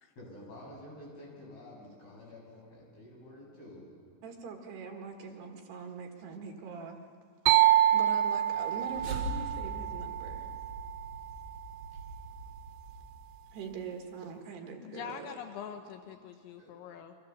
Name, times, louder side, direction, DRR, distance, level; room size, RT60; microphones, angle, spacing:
voice 1, 0.2-3.8 16.6-16.7, left 1 dB, 55° left, -3 dB, 9.4 m, -49 dB
voice 2, 4.2-7.0 7.5-7.7 7.9-10.5 13.5-15.4, right 5 dB, 65° right, 3 dB, 3.4 m, -43 dB
sound 1, 7.5-11.1, right 12 dB, 90° right, 2.1 m, -27 dB
sound 2, 8.4-13.7, right 2 dB, 35° right, 5.4 m, -42 dB
voice 3, 14.8-17.2, left 8 dB, 80° left, 6 dB, 3.3 m, -44 dB
29.5 x 25.0 x 7.2 m, 2.1 s
omnidirectional pair, 5.4 m